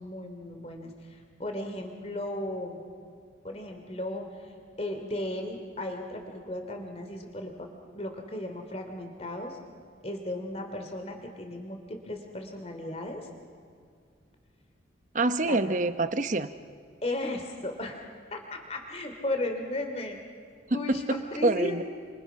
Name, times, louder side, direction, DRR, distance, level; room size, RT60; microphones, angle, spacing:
voice 1, 0.0-2.8 3.4-4.5 4.8-7.7 7.9-9.6 10.0-13.3 15.4-15.6 17.0-18.0 18.3-20.2 20.7-21.8, left 1 dB, 35° left, 4 dB, 2.9 m, -35 dB
voice 2, 15.1-16.5 20.7-21.2 21.4-21.8, right 2 dB, 40° right, 11 dB, 0.9 m, -26 dB
29.0 x 27.0 x 5.8 m, 2.3 s
head